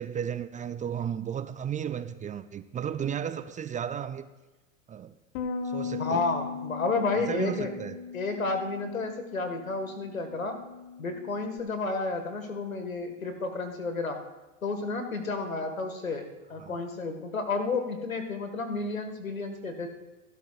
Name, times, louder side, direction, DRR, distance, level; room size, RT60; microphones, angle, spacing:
voice 1, 0.0-4.3 4.9-5.1 5.6-6.2 7.3-8.0 16.6-16.8, right 8 dB, 20° right, 12 dB, 0.6 m, -34 dB
Bass guitar, 5.3-11.6, left 5 dB, 55° left, 1.5 m, -38 dB
voice 2, 6.0-7.7 8.1-10.6 11.0-14.2 14.6-19.9, left 3 dB, 85° left, 6 dB, 1.9 m, -31 dB
28.0 x 12.0 x 2.5 m, 1.1 s
figure-of-eight pair, 85°, 40 cm